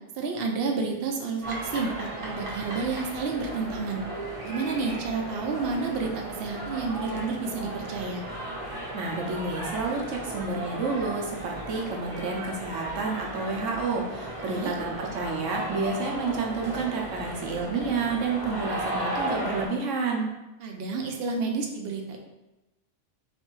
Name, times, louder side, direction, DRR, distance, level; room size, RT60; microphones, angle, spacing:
voice 1, 0.2-4.0 4.4-8.2 14.4-14.8 20.6-22.2, right 4 dB, 60° right, 2 dB, 0.8 m, -30 dB
sound 1, 1.4-19.7, right 1 dB, 30° right, 0.9 m, -35 dB
voice 2, 8.9-20.3, right 4 dB, 85° right, 0 dB, 1.2 m, -30 dB
3.3 x 3.3 x 4.6 m, 0.99 s
omnidirectional pair, 1.3 m